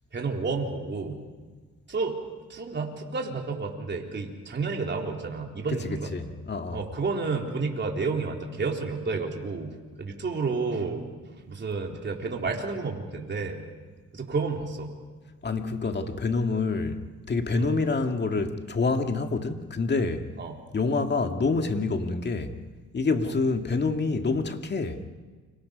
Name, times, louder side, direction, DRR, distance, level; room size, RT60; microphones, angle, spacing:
voice 1, 0.1-1.2 1.9-2.2 2.5-6.1 6.7-11.1 11.5-13.6 14.1-14.9 17.6-17.7 20.4-20.6, right 4 dB, 35° right, 1 dB, 4.0 m, -30 dB
voice 2, 5.7-6.8 15.4-17.0 17.3-20.3 20.7-22.5 22.9-25.0, left 3 dB, 35° left, 5 dB, 2.2 m, -27 dB
29.5 x 25.5 x 5.3 m, 1.4 s
cardioid pair, 90°, 30 cm